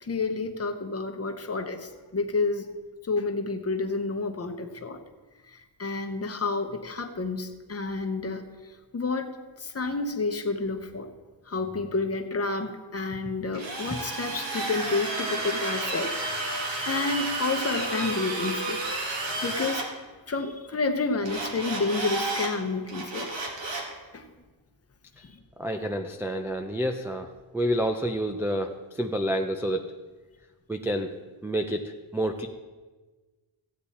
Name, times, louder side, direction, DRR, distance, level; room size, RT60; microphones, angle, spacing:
voice 1, 0.0-2.7 3.0-5.0 5.5-8.4 8.9-9.3 9.6-11.1 11.5-16.1 16.8-18.8 19.4-19.9 20.3-23.3 24.1-24.3 25.2-25.4, left 3 dB, 30° left, 6 dB, 0.8 m, -30 dB
Drill, 13.5-19.9 21.2-22.5 22.9-23.9, right 2 dB, 60° right, 2.2 m, -31 dB
voice 2, 25.6-27.3 27.5-29.9 30.7-31.1 31.4-32.5, equal, 5° right, 3 dB, 0.3 m, -28 dB
15.0 x 8.6 x 4.2 m, 1.3 s
wide cardioid pair, 175°, 49 cm